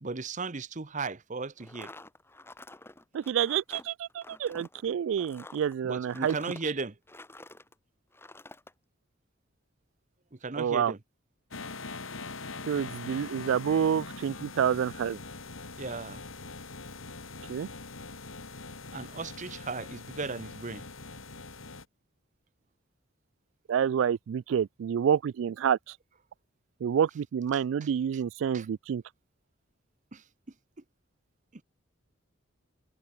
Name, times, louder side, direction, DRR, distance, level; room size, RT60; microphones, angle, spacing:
voice 1, 0.0-1.9 5.8-6.9 10.4-11.0 15.8-16.2 18.9-20.8 27.5-27.9 28.5-28.7 30.1-30.2, right 4 dB, 40° right, 0.9 m, -36 dB
sound 1, 1.6-7.7 8.1-8.7, left 2 dB, 10° left, 2.2 m, -49 dB
voice 2, 3.1-6.4 10.6-10.9 12.7-15.2 17.5-17.7 23.7-25.8 26.8-29.0, right 8 dB, 70° right, 0.3 m, -28 dB
sound 2, 11.5-21.8, left 3 dB, 80° left, 3.0 m, -42 dB
head